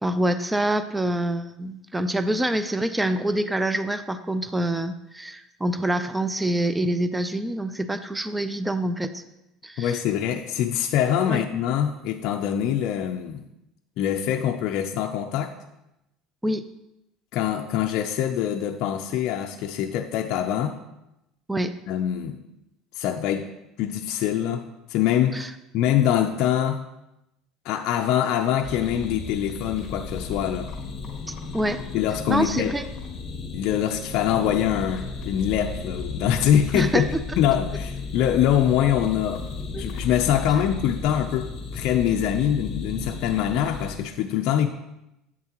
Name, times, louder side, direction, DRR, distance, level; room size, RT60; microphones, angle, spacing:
voice 1, 0.0-9.2 9.6-10.0 11.3-11.4 16.4-16.6 21.5-21.7 25.3-25.5 31.5-31.8 32.3-32.8 36.7-37.0 39.7-39.9, right 1 dB, 10° right, 11 dB, 0.4 m, -26 dB
voice 2, 9.8-13.4 14.0-15.5 17.3-20.8 21.9-22.4 23.0-23.5 23.8-24.6 24.9-25.5 25.7-26.8 27.6-30.7 31.9-32.8 33.5-37.1 37.4-39.4 39.7-44.7, left 10 dB, 60° left, 4 dB, 0.4 m, -24 dB
sound 1, 28.6-43.9, left 3 dB, 40° left, 1.5 m, -34 dB
8.1 x 7.3 x 2.9 m, 0.88 s
cardioid pair, 130°, 0 cm